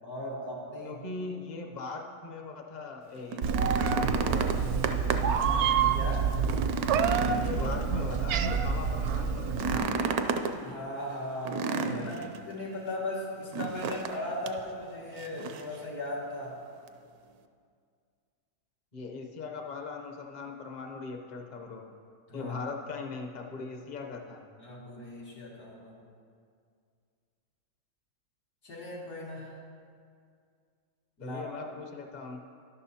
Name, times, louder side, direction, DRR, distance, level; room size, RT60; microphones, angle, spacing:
voice 1, 0.0-1.0 5.9-6.3 10.6-16.5 22.3-22.6 24.6-25.9 28.6-29.6 31.2-31.5, left 1 dB, 85° left, -6 dB, 2.8 m, -38 dB
voice 2, 0.8-4.7 7.3-10.3 11.8-12.3 18.9-21.9 22.3-24.4 31.2-32.4, left 3 dB, 40° left, 3 dB, 0.7 m, -40 dB
sound 1, 3.2-5.4 5.8-5.9 6.3-8.2 9.5-10.6 11.5-12.4 13.5-14.2 14.5-14.6 15.2-15.8 16.9-17.0, right 5 dB, 85° right, 1.1 m, -31 dB
Meow, 3.4-9.8, right 6 dB, 65° right, 0.7 m, -28 dB
12.5 x 11.5 x 2.8 m, 2.2 s
omnidirectional pair, 1.5 m